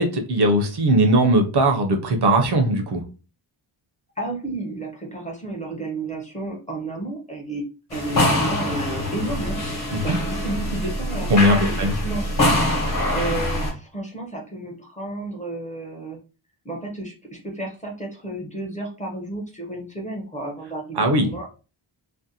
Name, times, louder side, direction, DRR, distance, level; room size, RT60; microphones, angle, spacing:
voice 1, 0.0-3.0 9.9-10.0 11.3-11.9 21.0-21.3, right 1 dB, 55° right, 4 dB, 0.5 m, -19 dB
voice 2, 4.2-7.6 7.9-9.6 10.0-12.2 13.1-16.2 16.6-21.5, right 2 dB, 15° left, 0 dB, 0.5 m, -32 dB
sound 1, 7.9-13.7, left 1 dB, 40° left, 0.9 m, -24 dB
2.5 x 2.1 x 2.7 m, 0.33 s
wide cardioid pair, 165°, 48 cm